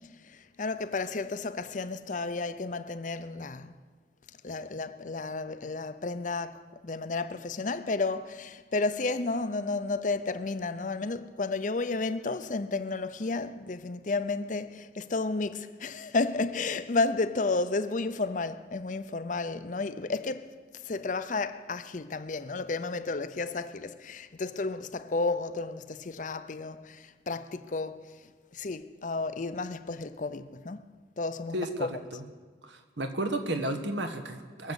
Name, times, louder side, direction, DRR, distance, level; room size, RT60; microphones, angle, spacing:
voice 1, 0.6-3.7 4.4-20.5 20.9-28.0 28.5-30.8 31.2-32.0, left 3 dB, 45° left, 0.6 m, -32 dB
voice 2, 31.5-32.2 32.7-34.7, right 1 dB, 85° right, 1.4 m, -33 dB
22.0 x 7.3 x 8.2 m
head